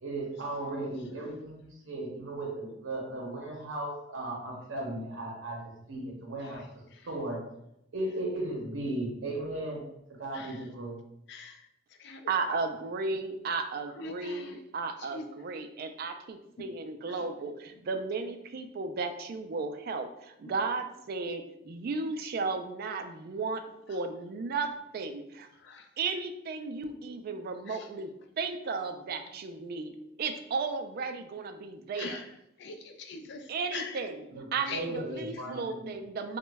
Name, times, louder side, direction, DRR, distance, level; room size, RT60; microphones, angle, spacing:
voice 1, 0.0-6.6 7.0-7.4 7.9-9.8 10.2-11.0 34.3-34.5 34.7-35.9, right 1 dB, 75° right, -1 dB, 0.7 m, -36 dB
voice 2, 10.3-10.6 11.3-11.7 12.0-12.2 14.0-14.6 15.0-15.2 16.6-16.7 17.1-17.2 25.7-25.9 27.7-27.9 32.0-32.3 32.6-34.0 34.7-34.8, left 4 dB, 60° left, 5 dB, 0.4 m, -42 dB
voice 3, 12.3-23.6 23.9-25.2 26.0-28.1 28.4-32.2 33.5-34.2 34.5-36.4, right 4 dB, 50° right, 6 dB, 0.3 m, -34 dB
3.0 x 2.2 x 3.3 m, 0.80 s
head